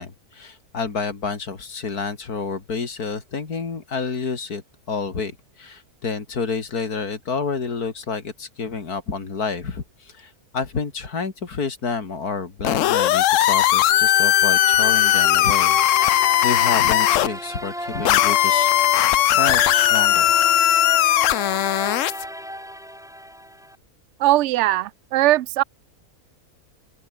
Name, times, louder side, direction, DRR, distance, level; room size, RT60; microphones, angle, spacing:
voice 1, 0.0-16.2 16.4-18.8 19.3-20.3, left 5 dB, 80° left, 3.1 m, -29 dB
sound 1, 12.6-17.3 18.1-22.2, left 13 dB, 65° left, 0.9 m, -18 dB
sound 2, 13.8-23.8, equal, ahead, 5.1 m, -33 dB
voice 2, 24.2-25.6, right 16 dB, 65° right, 0.8 m, -19 dB
open air
omnidirectional pair, 1.6 m